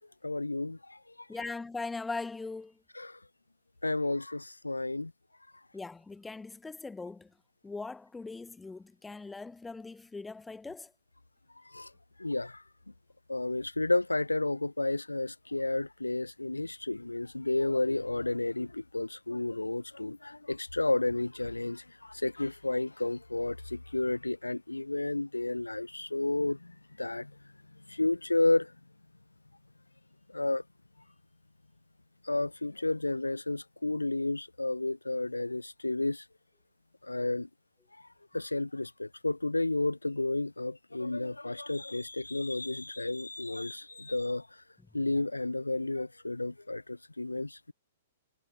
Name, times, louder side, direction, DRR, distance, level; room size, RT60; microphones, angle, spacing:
voice 1, 0.2-1.0 3.0-3.2 3.8-5.1 11.7-11.9 12.2-12.6 13.3-27.3 27.9-28.7 30.3-30.6 32.2-36.2 37.0-37.5 38.3-44.5 44.9-47.7, left 2 dB, 85° left, 0.9 m, -31 dB
voice 2, 1.3-2.8 5.7-7.3 7.6-10.9, left 3 dB, 10° left, 0.5 m, -40 dB
figure-of-eight pair, 110°, 0 cm